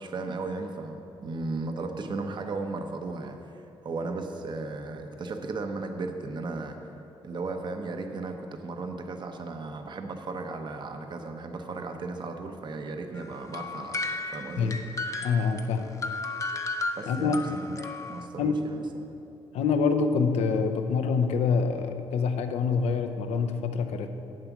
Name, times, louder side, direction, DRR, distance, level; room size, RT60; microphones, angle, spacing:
voice 1, 0.0-6.8 7.2-14.0 14.3-14.8 17.0-17.7 18.1-19.1, right 3 dB, 45° right, 5 dB, 0.8 m, -35 dB
sound 1, 13.2-18.3, left 2 dB, 30° left, 0.7 m, -34 dB
voice 2, 15.2-15.9 17.1-17.4 18.4-18.6 19.5-24.1, left 5 dB, 80° left, 7 dB, 0.7 m, -26 dB
8.0 x 7.5 x 6.0 m, 2.8 s
cardioid pair, 85°, 11 cm